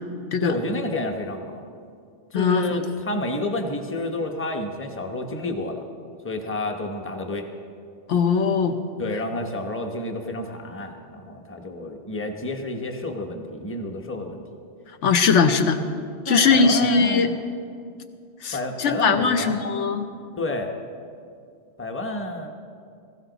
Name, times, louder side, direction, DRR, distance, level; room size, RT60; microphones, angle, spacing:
voice 1, 0.4-1.6 2.3-5.8 6.2-7.5 9.0-14.5 16.3-17.4 18.5-19.7 20.4-20.7 21.8-22.5, left 2 dB, 10° left, 3 dB, 0.9 m, -30 dB
voice 2, 2.3-2.7 8.1-8.8 15.0-15.8 16.3-17.3 18.4-20.1, left 5 dB, 75° left, 7 dB, 1.1 m, -20 dB
17.5 x 15.0 x 4.0 m, 2.3 s
omnidirectional pair, 1.2 m